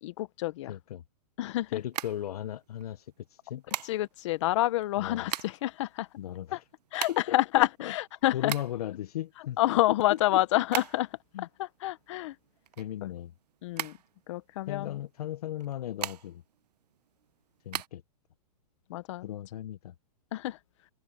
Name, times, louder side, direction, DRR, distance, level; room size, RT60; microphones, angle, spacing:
voice 1, 0.0-0.7 1.4-1.8 3.8-6.1 6.5-6.6 6.9-8.5 9.6-11.1 11.4-12.3 13.0-13.1 13.6-14.0 14.3-15.0 18.9-19.3 20.3-20.6, left 16 dB, 50° left, 1.2 m, -28 dB
voice 2, 0.6-1.0 1.7-3.6 5.0-5.3 6.2-6.6 7.1-7.9 8.3-9.6 9.9-10.4 11.3-11.5 12.8-13.3 14.7-16.4 17.6-18.0 19.2-19.9, left 12 dB, 65° left, 0.9 m, -37 dB
sound 1, 1.8-2.8 3.7-4.3 4.9-5.7 6.0-6.1 6.3-9.0 9.4-11.3 11.5-13.4 13.7-14.7 15.5-16.5 16.9-17.9, right 10 dB, 75° right, 1.1 m, -37 dB
hypercardioid pair, 155°, 20 cm